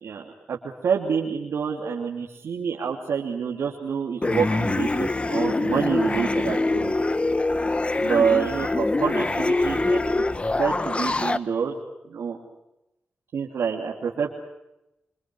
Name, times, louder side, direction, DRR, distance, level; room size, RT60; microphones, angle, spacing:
voice 1, 0.0-6.9 8.0-10.2 10.6-11.7 12.1-12.4 13.3-14.3, right 6 dB, 85° right, -1 dB, 3.0 m, -27 dB
sound 1, 4.2-11.4, left 2 dB, 25° left, 1.3 m, -24 dB
28.0 x 26.0 x 6.3 m, 0.90 s
cardioid pair, 75°, 4 cm